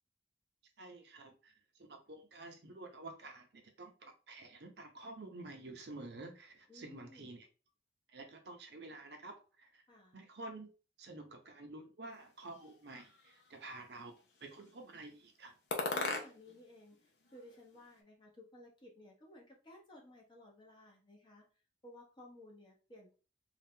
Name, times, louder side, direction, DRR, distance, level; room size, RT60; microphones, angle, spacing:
voice 1, 0.8-7.5 8.1-9.8 10.1-10.7 11.0-15.6, right 2 dB, 65° right, 4 dB, 0.7 m, -50 dB
voice 2, 6.7-7.4 9.9-10.2 15.9-21.4 21.8-23.1, left 1 dB, 25° left, -1 dB, 0.9 m, -57 dB
sound 1, 12.5-13.5 14.2-14.8 15.7-16.6 16.9-18.0, left 3 dB, 65° left, 0.6 m, -41 dB
2.7 x 2.4 x 3.5 m, 0.34 s
head